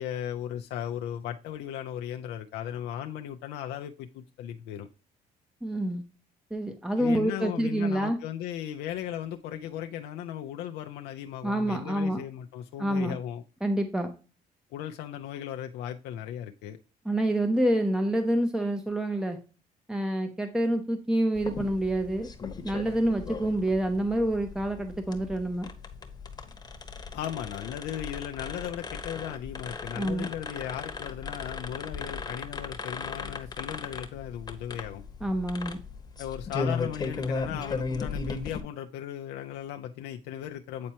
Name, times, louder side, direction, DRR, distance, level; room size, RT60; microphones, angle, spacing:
voice 1, 0.0-4.9 7.0-13.4 14.7-16.8 27.1-35.0 36.2-40.9, left 10 dB, 85° left, 0.5 m, -37 dB
voice 2, 5.6-6.0 6.5-8.2 11.4-12.2 12.8-13.2 13.6-14.1 17.1-19.4 19.9-22.3 22.6-25.7 29.9-30.3 35.2-35.8, right 1 dB, 5° right, 0.7 m, -27 dB
sound 1, 21.3-38.6, left 4 dB, 25° left, 1.0 m, -37 dB
8.4 x 4.4 x 2.8 m
cardioid pair, 110°, 17 cm